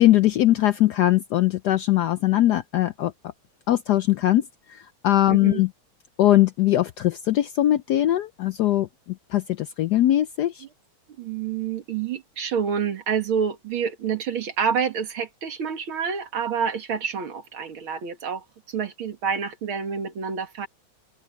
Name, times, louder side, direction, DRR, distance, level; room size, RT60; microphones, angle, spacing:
voice 1, 0.0-3.1 3.7-5.7 6.2-10.6, left 14 dB, 80° left, 0.9 m, -21 dB
voice 2, 5.3-5.6 11.2-20.7, right 7 dB, 80° right, 2.7 m, -28 dB
open air
omnidirectional pair, 2.3 m